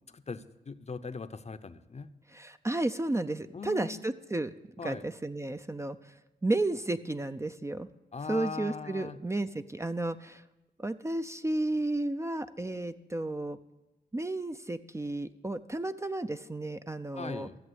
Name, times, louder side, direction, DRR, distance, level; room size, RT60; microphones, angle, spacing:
voice 1, 0.1-2.1 3.5-4.0 4.8-5.0 8.1-9.2 17.2-17.6, left 4 dB, 40° left, 10 dB, 0.7 m, -40 dB
voice 2, 2.3-4.5 4.8-6.0 6.4-7.9 8.3-10.4 10.8-13.6 14.1-17.5, right 2 dB, 15° right, 9 dB, 0.5 m, -32 dB
14.0 x 7.3 x 7.9 m, 1.0 s
cardioid pair, 60°, 17 cm